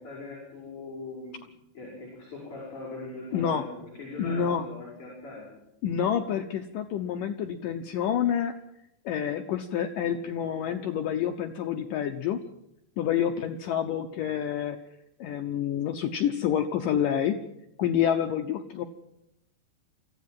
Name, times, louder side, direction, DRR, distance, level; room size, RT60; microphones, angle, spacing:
voice 1, 0.0-1.4 1.7-5.6, left 2 dB, 30° left, -4 dB, 6.5 m, -41 dB
voice 2, 3.3-3.6 4.2-4.6 5.8-8.5 9.1-12.4 13.0-14.8 15.2-17.4 17.8-18.8, left 9 dB, 85° left, 5 dB, 1.9 m, -28 dB
24.5 x 15.0 x 7.6 m, 0.83 s
omnidirectional pair, 5.2 m